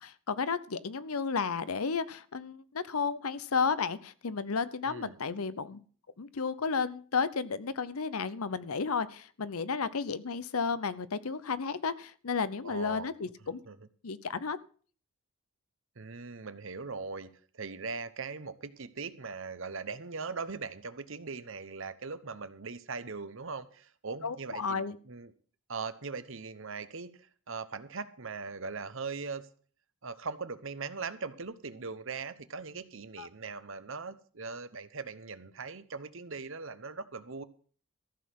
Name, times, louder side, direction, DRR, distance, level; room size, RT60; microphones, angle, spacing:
voice 1, 0.0-5.8 6.2-13.6 14.0-14.6 24.2-25.0 33.2-33.3, left 5 dB, 80° left, 16 dB, 0.7 m, -33 dB
voice 2, 4.8-5.2 12.6-13.1 13.7-13.9 16.0-25.3 25.7-29.5 30.0-37.4, right 4 dB, 60° right, 13 dB, 0.9 m, -40 dB
14.0 x 6.4 x 7.5 m, 0.43 s
head